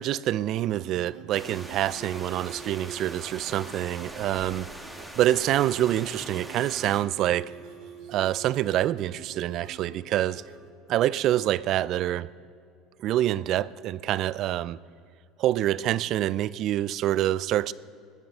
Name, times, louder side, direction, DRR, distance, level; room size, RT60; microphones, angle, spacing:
voice 1, 0.0-4.7 5.2-7.5 8.1-10.4 10.9-12.3 13.0-14.8 15.4-17.7, right 13 dB, 55° right, 0.3 m, -26 dB
sound 1, 0.6-10.7, right 6 dB, 70° right, 2.1 m, -47 dB
sound 2, 1.3-7.0, right 1 dB, 5° right, 1.6 m, -43 dB
20.5 x 7.5 x 6.6 m
supercardioid pair, 120°, 0 cm